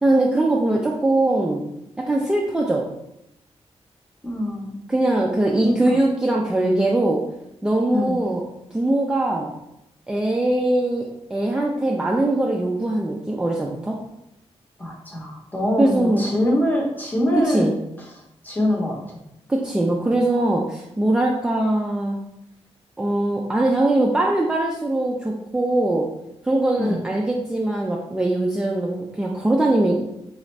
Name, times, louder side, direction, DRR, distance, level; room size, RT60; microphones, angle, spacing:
voice 1, 0.0-1.6 2.0-2.8 4.9-7.2 7.6-8.4 8.7-9.5 10.1-11.1 11.3-14.0 15.8-16.2 17.4-17.8 19.5-22.2 23.0-26.1 26.4-30.1, right 1 dB, 10° right, -2 dB, 0.3 m, -21 dB
voice 2, 4.2-4.7 5.5-5.7 7.9-8.2 14.8-17.7 18.4-19.2 26.8-27.0, left 1 dB, 15° left, -1 dB, 0.7 m, -24 dB
4.2 x 2.4 x 3.1 m, 0.82 s
wide cardioid pair, 165°, 11 cm